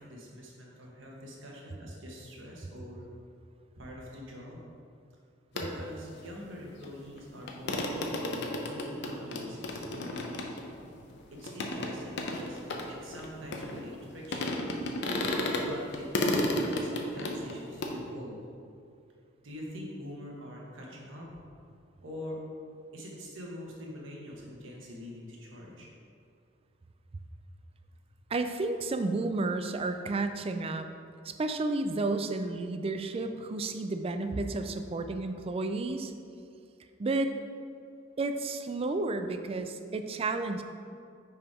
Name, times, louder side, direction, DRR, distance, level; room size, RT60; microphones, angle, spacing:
voice 1, 0.0-3.1 3.8-4.6 5.5-10.1 11.3-12.6 12.9-14.7 15.6-18.4 19.4-21.4 22.0-22.4 22.9-25.9, left 1 dB, 85° right, -2 dB, 1.4 m, -44 dB
sound 1, 5.6-5.7 6.8-6.9 7.2-7.3 7.5-14.0 14.3-15.6 15.9-17.9, left 1 dB, 65° left, 0.7 m, -32 dB
voice 2, 28.3-30.9 31.2-36.1 37.0-37.3 38.2-40.6, right 2 dB, 30° right, 8 dB, 0.4 m, -31 dB
5.5 x 4.8 x 4.9 m, 2.4 s
head